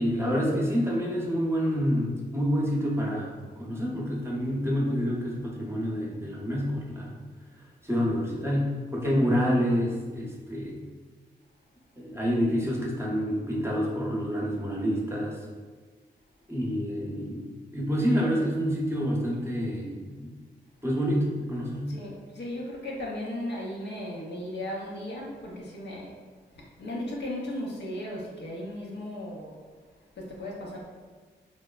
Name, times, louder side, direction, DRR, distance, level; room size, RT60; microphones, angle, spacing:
voice 1, 0.0-7.2 7.8-10.8 12.0-15.4 16.5-17.5 17.7-20.3 20.8-21.9, equal, 15° right, -4 dB, 0.8 m, -28 dB
voice 2, 21.9-26.1 26.8-29.6 30.2-30.8, left 1 dB, 60° left, -3 dB, 0.6 m, -36 dB
3.1 x 2.0 x 2.3 m, 1.4 s
supercardioid pair, 40°, 20 cm